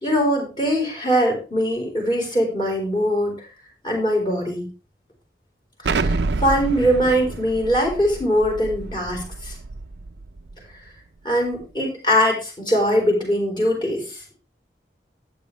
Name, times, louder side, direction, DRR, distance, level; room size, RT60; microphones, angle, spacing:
voice 1, 0.0-3.3 3.8-4.7 5.8-9.5 11.2-14.2, equal, 25° left, -1 dB, 4.2 m, -21 dB
Explosion, 5.8-10.5, right 3 dB, 80° right, 0.6 m, -28 dB
12.0 x 8.6 x 3.3 m, 0.31 s
head